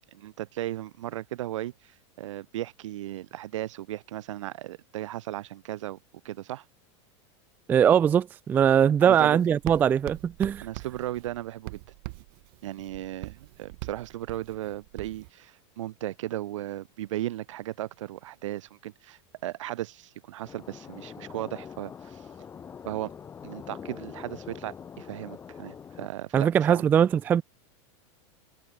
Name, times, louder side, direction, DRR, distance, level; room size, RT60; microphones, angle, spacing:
voice 1, 0.1-1.9 2.2-6.0 6.2-6.6 9.0-9.4 10.6-11.8 12.6-22.3 22.8-23.1 23.4-26.8, right 14 dB, 80° right, 3.3 m, -36 dB
voice 2, 7.7-10.7 26.3-27.4, right 8 dB, 10° right, 0.3 m, -21 dB
Writing, 9.0-15.3, right 29 dB, 50° right, 3.4 m, -43 dB
sound 1, 20.4-26.1, left 7 dB, 15° left, 2.6 m, -44 dB
supercardioid pair, 165°, 16 cm